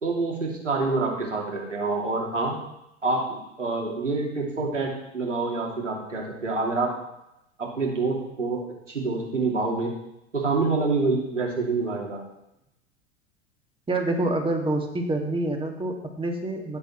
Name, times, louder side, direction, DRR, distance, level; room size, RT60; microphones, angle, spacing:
voice 1, 0.0-2.6 3.0-6.9 7.6-9.9 10.3-12.2, right 3 dB, 90° right, -2 dB, 2.8 m, -27 dB
voice 2, 13.9-16.8, right 2 dB, 15° right, 2 dB, 2.1 m, -27 dB
16.0 x 7.4 x 3.2 m, 0.85 s
figure-of-eight pair, 85°, 36 cm